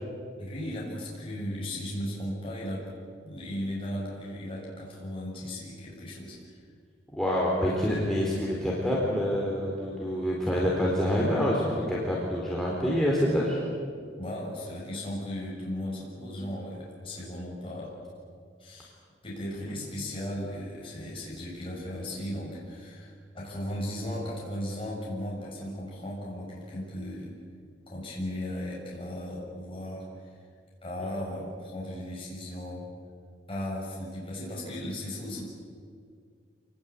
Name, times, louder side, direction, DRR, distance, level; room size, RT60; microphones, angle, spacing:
voice 1, 0.4-2.9 3.2-6.6 14.2-17.9 18.6-18.9 19.2-27.4 27.9-30.3 30.8-32.9 33.5-35.4, left 1 dB, 30° left, -4 dB, 7.0 m, -36 dB
voice 2, 7.1-11.6 11.9-13.6 19.4-19.8 24.1-24.2, equal, ahead, -5 dB, 3.9 m, -27 dB
27.5 x 20.0 x 8.5 m, 2.1 s
head